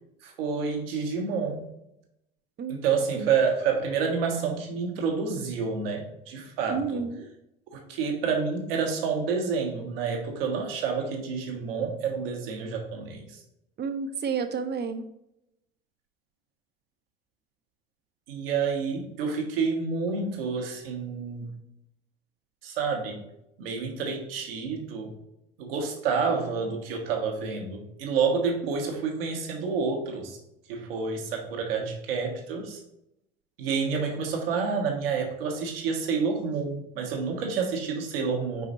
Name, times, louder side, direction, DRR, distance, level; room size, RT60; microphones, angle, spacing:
voice 1, 0.2-1.7 2.7-7.0 7.7-13.4 18.3-21.5 22.6-23.2 23.6-25.1 25.6-30.4 30.7-32.8 33.6-38.7, right 5 dB, 70° right, 3 dB, 1.3 m, -29 dB
voice 2, 6.7-7.3 13.8-15.1, right 5 dB, 35° right, 8 dB, 0.8 m, -31 dB
4.9 x 4.7 x 4.1 m, 0.82 s
figure-of-eight pair, 65°, 30 cm